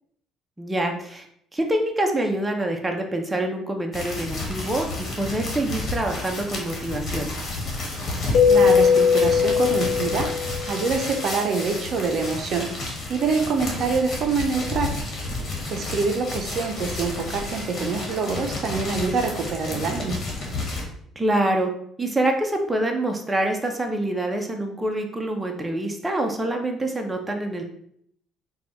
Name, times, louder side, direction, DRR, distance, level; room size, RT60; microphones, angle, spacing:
voice 1, 0.6-1.2 1.5-7.3 21.2-21.7 22.0-27.6, right 1 dB, 15° right, 3 dB, 0.7 m, -26 dB
sound 1, 3.9-20.8, left 2 dB, 45° left, 1.4 m, -31 dB
Keyboard (musical), 8.3-10.9, left 6 dB, 70° left, 0.6 m, -19 dB
voice 2, 8.5-10.3 10.7-12.7 13.1-14.9 15.7-20.2, right 4 dB, 55° right, 4 dB, 0.6 m, -25 dB
4.1 x 2.3 x 4.2 m, 0.68 s
supercardioid pair, 90°, 0 cm